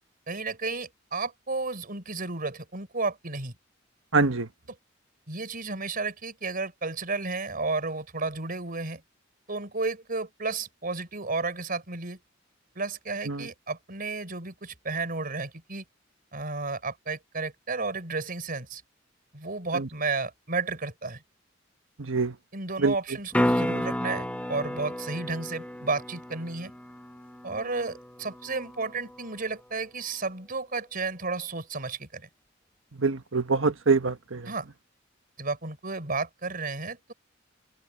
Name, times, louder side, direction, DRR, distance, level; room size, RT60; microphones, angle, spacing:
voice 1, 0.3-3.5 5.3-9.0 9.5-12.2 12.8-15.8 16.3-18.8 19.3-21.2 22.5-26.7 27.4-32.3 34.4-34.7 35.4-37.1, right 3 dB, 50° right, 4.4 m, -32 dB
voice 2, 4.1-4.5 13.3-13.4 19.7-19.9 22.0-22.3 22.8-22.9 33.0-34.5, right 4 dB, 80° right, 1.4 m, -25 dB
sound 1, 23.3-29.4 34.0-34.1, equal, 5° left, 1.2 m, -32 dB
open air
head